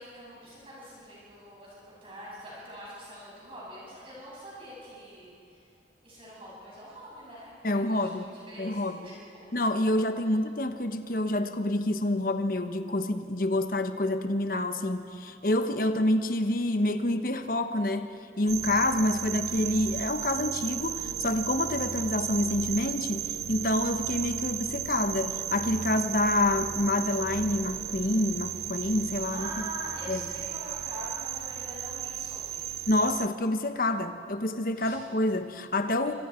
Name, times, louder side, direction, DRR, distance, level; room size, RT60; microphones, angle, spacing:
voice 1, 0.0-1.7 2.0-5.3 6.0-7.5 7.9-9.1 29.3-32.6 34.8-34.9, equal, 30° right, -7 dB, 6.9 m, -43 dB
voice 2, 7.6-9.1 9.5-29.7 30.1-30.3 32.9-36.1, left 1 dB, 50° left, 8 dB, 1.1 m, -28 dB
sound 1, 18.5-33.3, right 11 dB, 65° right, 0.5 m, -35 dB
26.0 x 25.0 x 4.5 m, 2.5 s
head